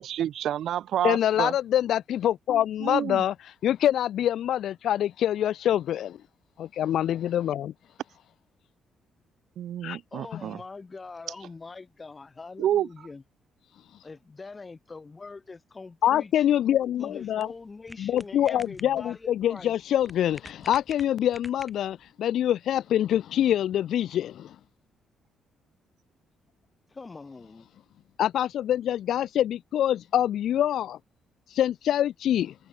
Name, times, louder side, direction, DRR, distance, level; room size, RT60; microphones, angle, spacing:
voice 1, 0.0-1.5 2.8-3.2 9.6-10.6 12.6-12.9, right 11 dB, 70° right, 0.5 m, -28 dB
voice 2, 1.0-3.3 3.6-6.2 6.6-7.7 9.8-10.0 10.3-10.4 16.0-17.5 18.0-24.6 28.2-31.0 31.5-32.5, left 11 dB, 70° left, 0.6 m, -25 dB
voice 3, 10.1-13.2 14.0-16.4 17.0-19.7 26.9-27.7, left 4 dB, 30° left, 1.4 m, -43 dB
sound 1, 16.5-22.1, equal, ahead, 2.6 m, -50 dB
cardioid pair, 90°, 0 cm